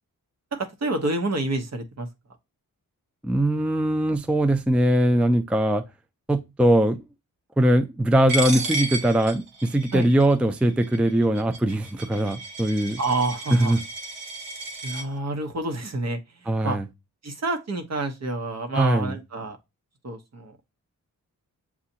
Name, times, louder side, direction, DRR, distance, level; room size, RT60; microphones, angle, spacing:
voice 1, 0.6-2.1 9.9-10.1 13.0-13.7 14.8-16.2 16.6-16.8 17.2-19.6 20.0-20.5, right 2 dB, 50° right, 1.0 m, -28 dB
voice 2, 3.2-5.8 6.3-7.0 7.6-13.0 13.5-13.8 16.5-16.9 18.7-19.2, right 1 dB, 5° right, 0.4 m, -21 dB
Coin (dropping), 8.3-15.0, right 2 dB, 75° right, 1.1 m, -33 dB
7.1 x 2.4 x 2.7 m
cardioid pair, 55°, 34 cm